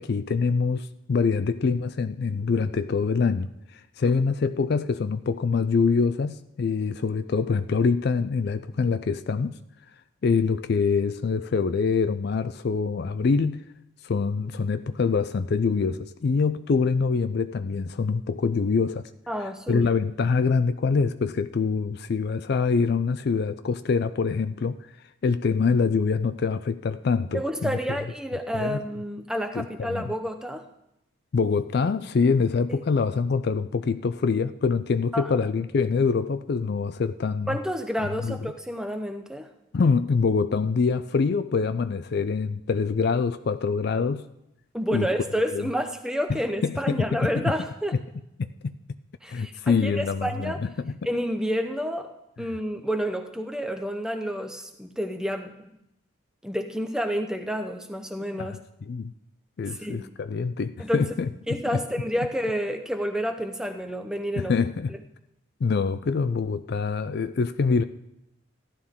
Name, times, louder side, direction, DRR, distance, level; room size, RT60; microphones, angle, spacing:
voice 1, 0.0-9.5 10.2-13.6 14.0-19.1 19.7-24.8 25.2-27.8 28.5-28.8 29.6-30.1 31.3-37.6 38.0-38.4 39.7-44.2 44.9-45.1 45.5-45.7 46.3-47.3 48.4-48.7 49.3-50.9 58.4-59.1 59.6-61.8 64.4-64.9 65.6-67.8, left 5 dB, 50° left, 12 dB, 0.3 m, -25 dB
voice 2, 19.3-19.9 27.3-30.7 32.7-32.8 35.1-35.3 37.5-39.5 44.7-48.0 49.2-50.6 51.1-55.5 56.4-58.6 59.7-60.1 60.8-61.1 61.5-64.5, equal, 5° right, 6 dB, 0.7 m, -29 dB
15.0 x 11.5 x 3.6 m, 0.84 s
head